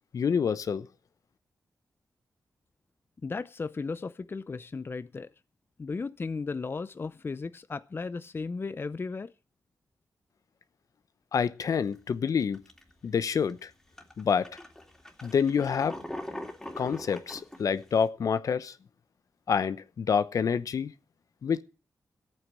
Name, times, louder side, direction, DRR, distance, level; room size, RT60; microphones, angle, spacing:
voice 1, 0.1-0.9 11.3-12.6 13.0-13.7 14.2-14.5 15.2-16.0 16.8-18.7 19.5-20.9 21.4-21.6, left 6 dB, 70° left, 0.9 m, -27 dB
voice 2, 3.2-5.3 5.8-9.3, left 4 dB, 40° left, 0.6 m, -35 dB
sound 1, 11.7-11.9 12.4-12.9 13.5-13.6 14.0-18.0, left 1 dB, 10° left, 2.9 m, -41 dB
14.5 x 9.0 x 7.5 m
cardioid pair, 75°, 6 cm